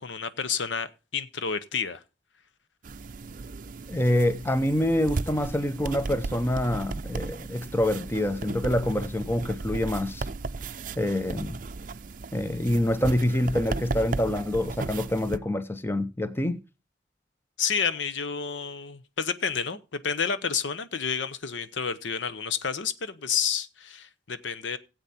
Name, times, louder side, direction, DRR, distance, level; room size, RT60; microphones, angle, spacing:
voice 1, 0.0-2.0 17.6-24.8, left 6 dB, 90° left, 0.8 m, -30 dB
sound 1, 2.8-15.4, right 3 dB, 45° right, 0.5 m, -36 dB
voice 2, 3.9-10.3 11.0-11.6 12.3-16.6, left 1 dB, 10° left, 0.7 m, -26 dB
15.5 x 8.1 x 4.2 m
head